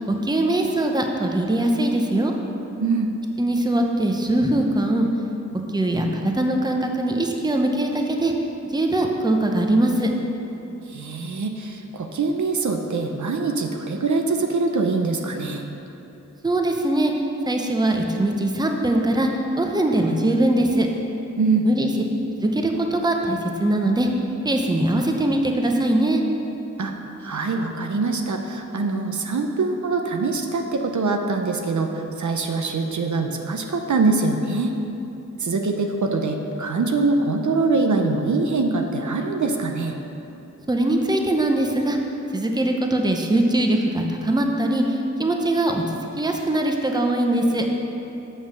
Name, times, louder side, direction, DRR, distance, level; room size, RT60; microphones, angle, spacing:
voice 1, 0.2-2.3 3.4-5.1 5.7-8.3 8.6-10.1 16.4-17.1 17.5-19.3 19.6-20.9 21.6-21.9 22.4-24.1 24.4-26.2 40.7-42.0 42.3-45.8 46.2-47.7, right 1 dB, 15° right, 2 dB, 0.7 m, -21 dB
voice 2, 2.8-3.1 10.9-15.6 21.4-21.7 26.8-26.9 27.2-34.7 35.4-40.0, right 3 dB, 70° right, 4 dB, 0.7 m, -23 dB
7.4 x 5.3 x 6.2 m, 3.0 s
wide cardioid pair, 85°, 30 cm